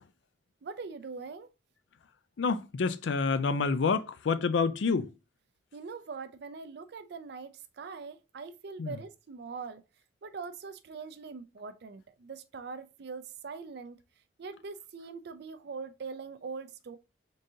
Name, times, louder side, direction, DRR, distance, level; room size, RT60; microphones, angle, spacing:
voice 1, 0.6-1.5 5.7-9.8 10.2-14.0 14.4-17.0, right 5 dB, 60° right, 0.4 m, -42 dB
voice 2, 2.4-5.1 8.8-9.0, left 4 dB, 70° left, 0.4 m, -28 dB
3.8 x 3.6 x 2.7 m
head